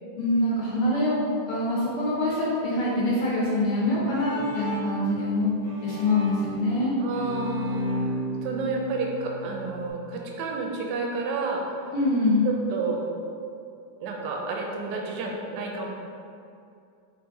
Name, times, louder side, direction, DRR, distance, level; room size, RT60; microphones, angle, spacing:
voice 1, 0.2-1.2 1.5-5.5 5.8-6.9 11.9-12.5, left 1 dB, 75° left, -6 dB, 1.3 m, -24 dB
Bowed string instrument, 3.8-9.9, left 1 dB, 45° right, 1.1 m, -33 dB
voice 2, 7.0-8.0 8.4-11.6 12.4-13.0 14.0-15.9, right 4 dB, 75° right, 0 dB, 1.2 m, -30 dB
4.6 x 3.4 x 2.6 m, 2.5 s
omnidirectional pair, 2.0 m